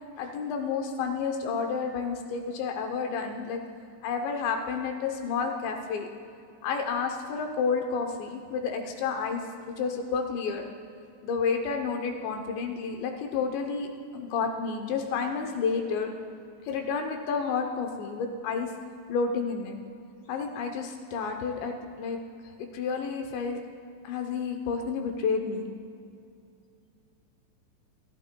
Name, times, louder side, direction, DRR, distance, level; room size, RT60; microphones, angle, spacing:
voice 1, 0.2-3.6 4.0-6.1 6.6-9.4 9.8-10.7 11.2-13.9 14.1-16.1 16.6-18.7 19.1-19.7 20.3-22.2 22.6-23.6 24.0-25.7, left 5 dB, 80° left, 3 dB, 2.7 m, -30 dB
27.0 x 11.0 x 2.2 m, 2.5 s
omnidirectional pair, 5.7 m